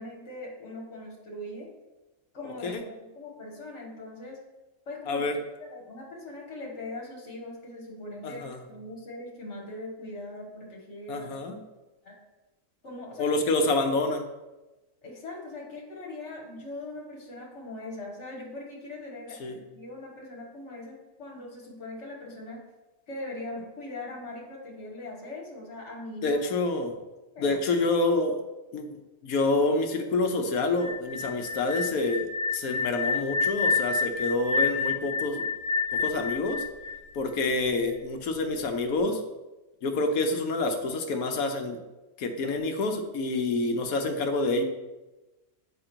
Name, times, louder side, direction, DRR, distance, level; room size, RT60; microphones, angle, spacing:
voice 1, 0.0-1.7 2.3-4.4 4.9-11.4 12.0-12.2 12.8-13.3 15.0-22.6 23.1-26.4 27.3-27.6, left 2 dB, 55° left, -1 dB, 1.9 m, -41 dB
voice 2, 5.1-5.4 8.2-8.6 11.1-11.6 13.2-14.2 19.4-19.6 26.2-27.0 27.4-28.4 28.7-28.9 29.2-35.4 35.9-36.6 37.1-39.2 39.8-41.8 42.2-44.6, left 2 dB, 80° left, 5 dB, 1.3 m, -27 dB
sound 1, 30.8-37.7, left 4 dB, 85° right, 1.8 m, -29 dB
8.7 x 3.8 x 4.5 m, 1.1 s
omnidirectional pair, 1.5 m